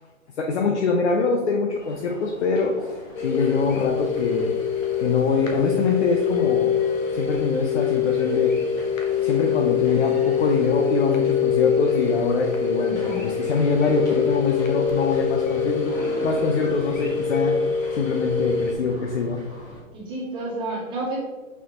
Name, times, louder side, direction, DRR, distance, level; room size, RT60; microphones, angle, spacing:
voice 1, 0.4-4.6 5.0-6.8 7.1-8.6 9.2-15.9 16.2-17.6 17.9-19.4, left 4 dB, 55° left, 1 dB, 0.8 m, -24 dB
sound 1, 1.8-19.8, left 1 dB, 10° left, 1.2 m, -42 dB
sound 2, 3.2-18.7, left 7 dB, 70° left, 1.5 m, -24 dB
voice 2, 12.8-13.2 19.9-21.2, right 2 dB, 10° right, -7 dB, 2.0 m, -30 dB
6.1 x 5.8 x 2.9 m, 1.3 s
hypercardioid pair, 150°, 41 cm